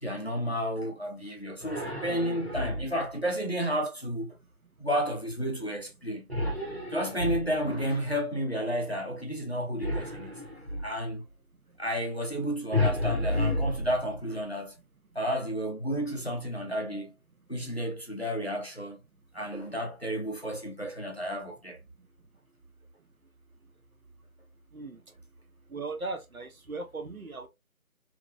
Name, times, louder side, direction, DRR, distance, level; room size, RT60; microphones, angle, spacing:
voice 1, 0.0-4.4 4.8-6.3 6.9-10.3 10.8-11.3 11.8-14.8 15.1-17.1 17.5-19.0 19.3-21.8, equal, 45° left, 0.6 m, -32 dB
sound 1, 1.6-3.1 6.3-7.9 9.8-11.0 12.7-14.4, left 2 dB, 45° right, 0.9 m, -31 dB
voice 2, 25.7-27.5, right 3 dB, 70° right, 0.9 m, -37 dB
2.8 x 2.1 x 2.5 m
figure-of-eight pair, 180°, 44 cm